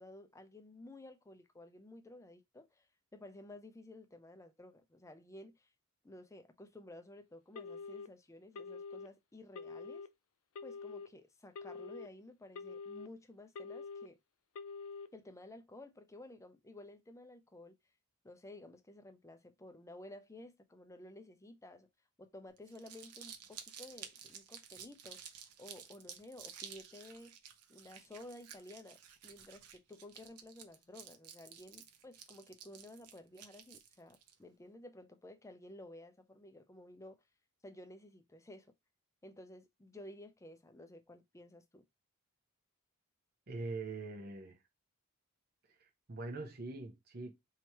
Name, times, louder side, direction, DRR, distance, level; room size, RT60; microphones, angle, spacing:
voice 1, 0.0-2.9 3.1-5.7 6.0-10.1 10.6-14.2 15.1-17.8 18.2-21.9 22.2-27.3 27.7-37.2 37.6-38.7 39.2-41.8, left 1 dB, 15° left, 0.5 m, -54 dB
Telephone, 7.6-8.1 8.6-9.1 9.6-10.1 10.6-11.1 11.6-12.1 12.6-13.1 13.6-14.1 14.6-15.1, left 4 dB, 65° left, 0.5 m, -45 dB
Crumpling crinkling, 22.6-34.3, right 8 dB, 85° right, 0.7 m, -53 dB
voice 2, 43.5-44.6 45.7-47.3, right 3 dB, 45° right, 0.7 m, -43 dB
3.0 x 2.8 x 4.5 m
head